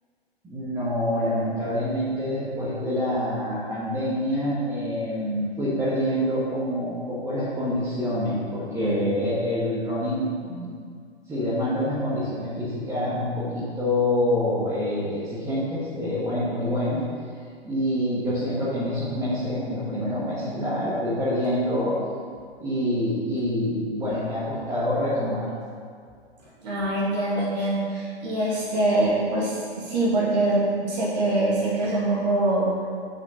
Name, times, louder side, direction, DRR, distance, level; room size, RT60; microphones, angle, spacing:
voice 1, 0.4-10.8 11.3-17.0 17.6-21.9 22.6-25.5, left 1 dB, 10° right, -10 dB, 1.3 m, -26 dB
voice 2, 26.6-32.7, right 2 dB, 40° right, -7 dB, 2.0 m, -24 dB
6.3 x 5.1 x 5.8 m, 2.1 s
figure-of-eight pair, 120°, 32 cm